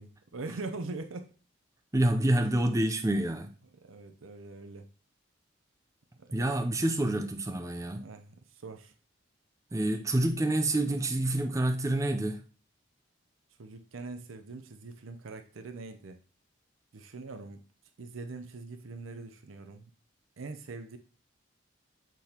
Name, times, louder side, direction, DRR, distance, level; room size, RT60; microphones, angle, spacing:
voice 1, 0.0-1.3 3.7-4.9 6.2-6.3 7.9-8.9 13.6-16.2 16.9-17.6 18.0-19.9 20.4-21.0, right 3 dB, 80° right, 0.6 m, -42 dB
voice 2, 1.9-3.5 6.3-8.1 9.7-12.4, right 1 dB, 15° right, 0.5 m, -27 dB
6.7 x 6.1 x 2.8 m
head